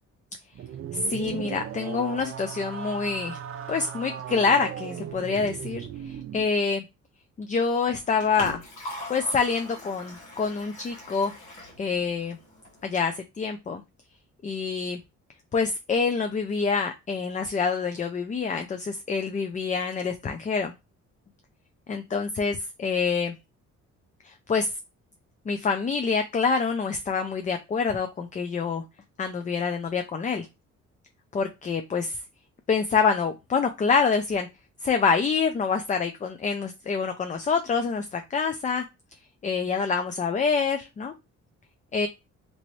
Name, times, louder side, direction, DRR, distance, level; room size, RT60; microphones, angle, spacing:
sound 1, 0.5-6.5, right 9 dB, 45° right, 0.5 m, -37 dB
voice 1, 0.9-3.4 3.7-6.8 7.4-8.6 9.1-11.3 11.8-12.4 12.8-13.8 14.4-15.0 15.5-20.7 21.9-23.3 24.2-24.7 25.5-28.8 29.2-30.5 31.3-32.2 32.7-34.5 34.8-38.8 39.4-41.1 41.9-42.1, left 5 dB, 25° left, 7 dB, 0.4 m, -26 dB
Liquid, 7.8-12.8, left 1 dB, 80° left, 1.4 m, -42 dB
3.0 x 3.0 x 2.6 m, 0.24 s
cardioid pair, 90°, 30 cm